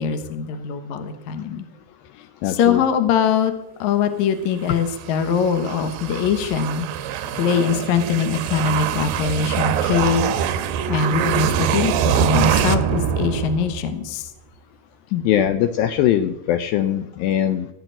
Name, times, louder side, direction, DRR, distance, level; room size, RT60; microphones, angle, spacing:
voice 1, 0.0-1.7 2.4-3.5 3.8-6.9 7.4-10.3 10.9-14.3 15.1-15.2, left 7 dB, 70° left, 8 dB, 1.8 m, -22 dB
voice 2, 2.4-2.8 7.2-7.4 15.2-17.7, left 11 dB, 85° left, 10 dB, 2.0 m, -21 dB
sound 1, 4.7-14.0, right 9 dB, 80° right, 2.2 m, -24 dB
17.0 x 6.0 x 9.0 m, 0.90 s
omnidirectional pair, 4.9 m